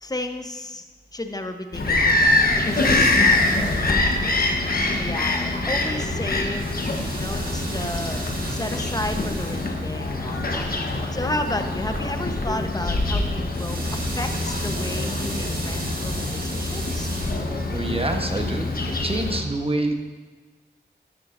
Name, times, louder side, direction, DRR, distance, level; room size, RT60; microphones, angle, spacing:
voice 1, 0.0-0.8 1.1-4.4 5.0-6.7 7.1-10.7 11.1-17.1, left 1 dB, 20° left, 6 dB, 0.9 m, -33 dB
Bird vocalization bird call bird song, 1.7-19.4, left 2 dB, 55° left, 1.1 m, -24 dB
sound 1, 2.3-19.0, right 2 dB, 55° right, 1.9 m, -36 dB
voice 2, 17.7-18.7 19.0-19.9, right 2 dB, 30° right, 4 dB, 1.1 m, -26 dB
12.5 x 8.4 x 2.6 m, 1.3 s
cardioid pair, 50°, 18 cm